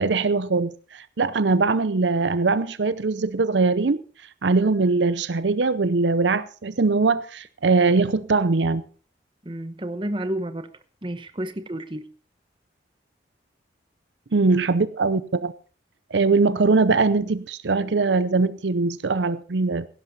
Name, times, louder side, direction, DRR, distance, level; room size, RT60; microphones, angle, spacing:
voice 1, 0.0-4.0 4.4-8.9 14.3-15.5 16.1-19.9, right 3 dB, 75° right, 0.6 m, -21 dB
voice 2, 9.4-10.7 11.0-12.1, right 1 dB, 25° right, 1.0 m, -30 dB
16.0 x 11.5 x 4.2 m
head